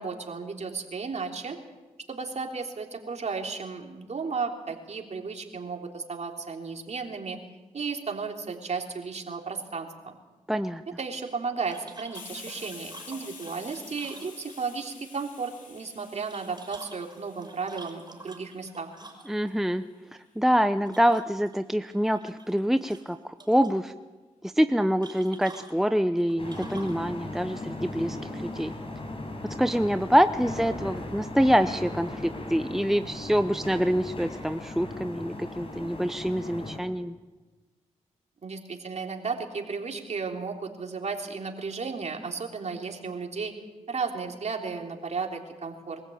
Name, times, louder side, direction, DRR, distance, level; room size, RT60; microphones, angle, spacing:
voice 1, 0.0-1.6 2.1-7.4 7.7-10.2 11.0-18.9 38.4-43.5 43.9-46.0, right 5 dB, 55° right, 2 dB, 3.4 m, -34 dB
voice 2, 10.5-10.8 19.3-19.8 20.4-23.2 23.5-23.9 24.4-28.7 29.6-37.1, equal, 5° right, 10 dB, 0.8 m, -25 dB
sound 1, 11.7-14.8 16.1-19.5 20.9-21.6 21.9-22.6 22.9-23.8 25.0-27.0, right 2 dB, 30° right, 5.1 m, -48 dB
Hiss, 12.1-19.5, left 5 dB, 80° left, 4.1 m, -48 dB
sound 2, 26.4-36.8, left 1 dB, 45° left, 5.4 m, -37 dB
23.0 x 15.5 x 8.7 m, 1.3 s
supercardioid pair, 50°, 14 cm